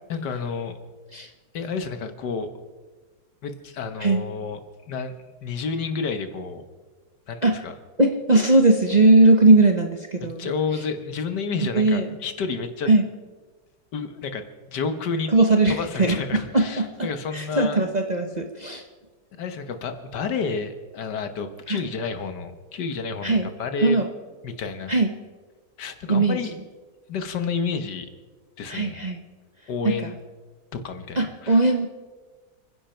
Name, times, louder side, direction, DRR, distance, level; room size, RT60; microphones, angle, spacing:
voice 1, 0.1-0.8 1.5-2.5 3.4-4.6 4.9-5.1 5.4-6.6 7.3-7.7 10.2-12.9 13.9-15.3 15.7-17.8 19.4-24.0 24.4-24.9 25.8-26.5 27.1-28.1 28.6-29.0 29.7-30.1 30.7-31.6, left 5 dB, 75° left, 9 dB, 1.8 m, -30 dB
voice 2, 8.0-10.8 11.7-12.2 12.9-13.0 15.3-18.8 21.7-21.8 23.2-23.5 23.8-24.1 24.9-25.1 26.1-26.4 28.7-29.2 29.8-30.1 31.2-31.9, right 2 dB, 30° right, 4 dB, 0.9 m, -19 dB
29.5 x 10.5 x 4.5 m, 1.4 s
omnidirectional pair, 1.9 m